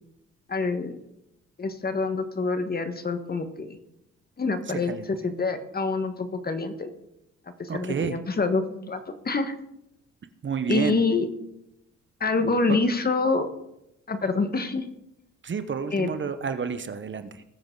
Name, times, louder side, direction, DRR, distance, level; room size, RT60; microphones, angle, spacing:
voice 1, 0.5-0.9 1.6-3.8 4.4-6.9 7.6-9.5 10.7-11.2 12.2-13.5 14.1-14.9 15.9-16.1, left 3 dB, 30° left, 9 dB, 1.5 m, -26 dB
voice 2, 4.7-5.0 7.7-8.2 10.4-11.0 12.7-12.8 15.4-17.4, right 6 dB, 40° right, 10 dB, 1.0 m, -30 dB
20.5 x 7.8 x 3.9 m, 0.84 s
cardioid pair, 90°, 30 cm